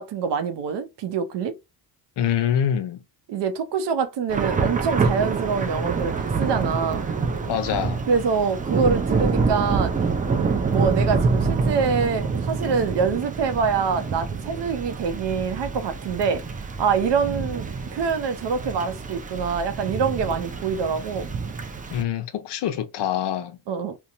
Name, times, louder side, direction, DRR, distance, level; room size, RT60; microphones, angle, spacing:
voice 1, 0.0-1.5 3.3-7.0 8.1-10.0 10.7-16.4 16.8-21.3 23.7-24.0, right 6 dB, 65° right, 0.6 m, -25 dB
voice 2, 2.2-3.0 7.5-8.0 21.9-23.6, left 9 dB, 60° left, 0.6 m, -25 dB
Thunder / Rain, 4.3-22.0, right 4 dB, 20° right, 0.4 m, -26 dB
2.8 x 2.1 x 2.5 m
cardioid pair, 95°, 46 cm